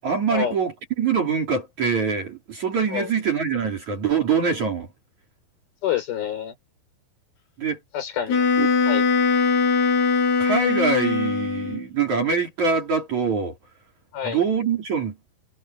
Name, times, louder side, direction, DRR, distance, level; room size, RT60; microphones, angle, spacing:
voice 1, 0.0-4.9 7.6-7.8 8.6-8.7 10.4-13.6 14.2-15.2, right 5 dB, 45° right, 5.0 m, -24 dB
voice 2, 5.8-6.5 7.9-8.5 8.9-9.1 14.1-14.4, left 9 dB, 65° left, 6.3 m, -27 dB
Wind instrument woodwind instrument, 8.3-11.9, left 5 dB, 90° left, 7.1 m, -21 dB
omnidirectional pair, 4.6 m